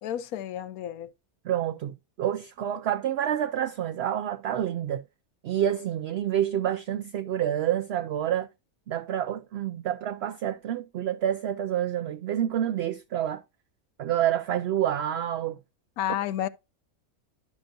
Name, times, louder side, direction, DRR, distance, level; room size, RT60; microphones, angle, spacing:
voice 1, 0.0-1.1 16.0-16.5, left 11 dB, 80° left, 1.1 m, -31 dB
voice 2, 1.4-5.0 5.4-8.5 8.9-13.4 14.0-15.6, right 10 dB, 65° right, 0.6 m, -28 dB
11.5 x 5.2 x 2.6 m
omnidirectional pair, 1.5 m